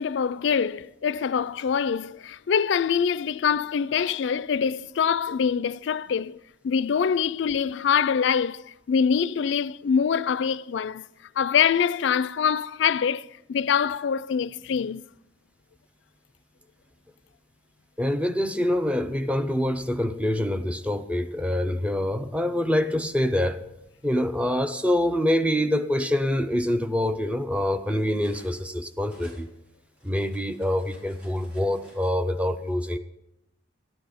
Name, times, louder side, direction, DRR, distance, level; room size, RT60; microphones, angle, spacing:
voice 1, 0.0-6.4 6.6-11.0 11.4-15.0, left 7 dB, 65° left, 0.4 m, -24 dB
voice 2, 18.0-23.6 24.0-29.5 30.0-33.0, left 1 dB, 5° right, 0.6 m, -25 dB
Cutlery silverware, 22.6-23.9 24.8-25.0 25.4-28.7 29.0-32.1, equal, 60° right, 5.7 m, -54 dB
12.5 x 12.0 x 5.1 m
head